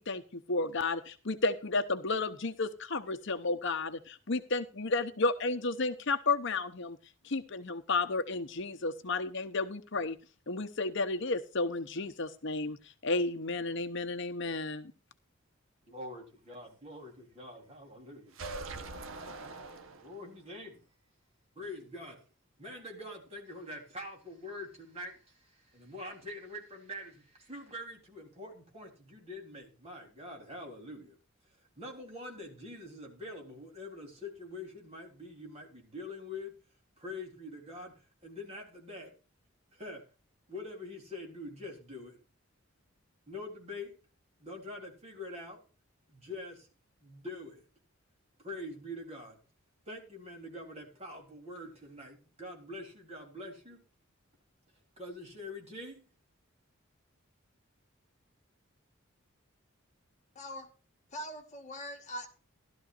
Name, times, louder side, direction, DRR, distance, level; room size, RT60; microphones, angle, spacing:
voice 1, 0.0-7.0 7.2-10.2 10.5-14.9, left 3 dB, 55° left, 0.8 m, -32 dB
voice 2, 15.9-18.4 20.0-20.8 21.6-22.2 22.6-31.2 31.8-36.5 37.0-39.2 39.7-40.0 40.5-42.2 43.3-44.0 44.4-45.6 46.1-46.7 47.0-47.7 48.4-49.4 49.9-53.8 55.0-56.0, left 1 dB, 30° right, 3.7 m, -45 dB
sound 1, 18.3-20.4, right 3 dB, 65° right, 1.1 m, -43 dB
voice 3, 60.3-60.7 61.1-62.3, equal, 35° left, 2.1 m, -42 dB
16.0 x 12.5 x 2.5 m
head